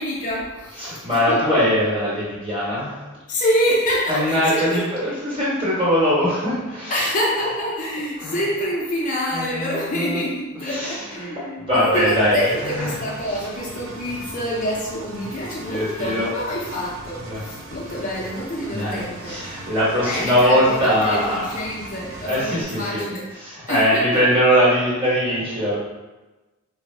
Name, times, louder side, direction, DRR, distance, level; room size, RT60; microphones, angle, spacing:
voice 1, 0.0-1.6 3.3-4.8 6.9-19.4 20.0-23.3 23.6-24.2, equal, 35° left, -4 dB, 0.4 m, -26 dB
voice 2, 0.8-3.0 4.1-7.1 8.2-8.4 9.3-10.2 10.5-12.4 12.7-12.9 14.0-14.1 15.7-16.3 17.2-17.4 18.7-21.5 22.2-23.0 23.3-25.8, equal, 25° right, -7 dB, 1.0 m, -21 dB
Engine, 11.9-22.6, right 2 dB, 70° right, 0.4 m, -39 dB
3.2 x 2.0 x 3.2 m, 1.1 s
head